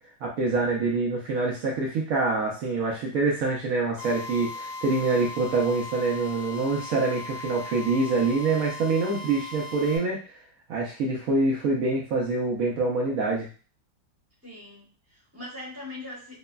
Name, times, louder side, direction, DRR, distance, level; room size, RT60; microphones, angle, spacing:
voice 1, 0.2-10.2 10.7-13.5, right 3 dB, 85° right, -2 dB, 0.7 m, -25 dB
Drill, 4.0-10.0, left 2 dB, 70° left, 0.7 m, -38 dB
voice 2, 14.4-16.4, left 2 dB, 10° right, -6 dB, 0.7 m, -41 dB
3.1 x 2.1 x 2.2 m, 0.37 s
omnidirectional pair, 2.1 m